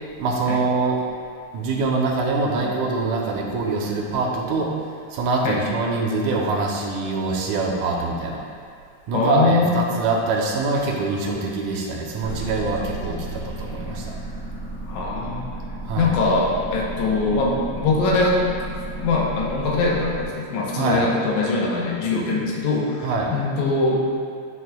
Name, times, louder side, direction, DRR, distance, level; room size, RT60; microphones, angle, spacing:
voice 1, 0.2-1.0 1.5-4.7 5.1-8.4 9.1-14.1 15.8-16.1 20.8-21.0 23.0-23.3, right 3 dB, 90° right, -1 dB, 2.2 m, -24 dB
voice 2, 9.1-9.7 14.9-15.4 16.0-18.5 19.0-24.2, left 3 dB, 80° left, -2 dB, 2.3 m, -22 dB
sound 1, 12.2-20.2, right 2 dB, 70° right, 0.8 m, -33 dB
10.0 x 4.7 x 2.2 m, 2.2 s
omnidirectional pair, 3.4 m